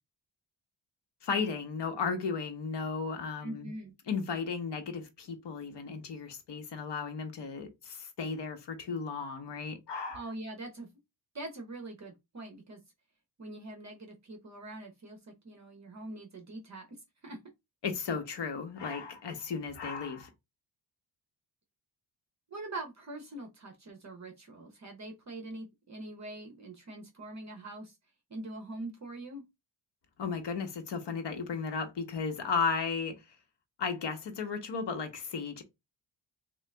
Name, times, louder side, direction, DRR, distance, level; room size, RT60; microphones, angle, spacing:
voice 1, 1.2-3.7 4.1-10.2 17.8-20.3 30.2-33.2 33.8-35.6, left 5 dB, 65° left, 1.0 m, -35 dB
voice 2, 3.4-3.9 10.1-10.9 11.3-12.8 13.4-16.9 17.2-17.4 22.5-28.0 28.3-29.4, right 2 dB, 35° right, 0.8 m, -43 dB
3.7 x 2.4 x 3.2 m
wide cardioid pair, 165°, 46 cm